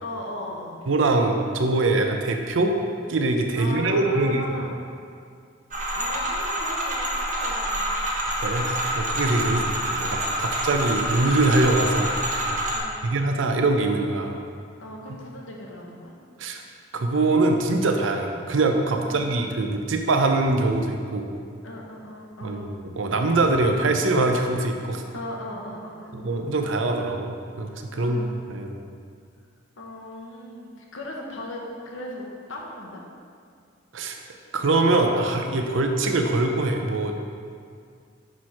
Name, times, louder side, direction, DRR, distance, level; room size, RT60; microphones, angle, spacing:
voice 1, 0.0-0.8 3.6-4.8 5.9-8.0 9.4-9.8 12.7-13.1 14.8-16.1 19.0-19.3 21.6-22.7 25.1-26.3 27.9-28.4 29.8-33.0, left 1 dB, 90° left, -1 dB, 1.0 m, -37 dB
voice 2, 0.9-2.7 3.1-4.5 8.4-9.6 9.9-12.1 12.5-12.6 13.0-14.4 16.4-16.6 16.9-21.3 22.4-22.7 23.0-25.0 26.1-28.2 28.5-28.8 33.9-34.2 34.5-37.4, right 2 dB, 80° right, 4 dB, 0.6 m, -23 dB
sound 1, 5.7-12.8, right 1 dB, 40° right, 0.9 m, -27 dB
6.0 x 4.3 x 4.8 m, 2.2 s
head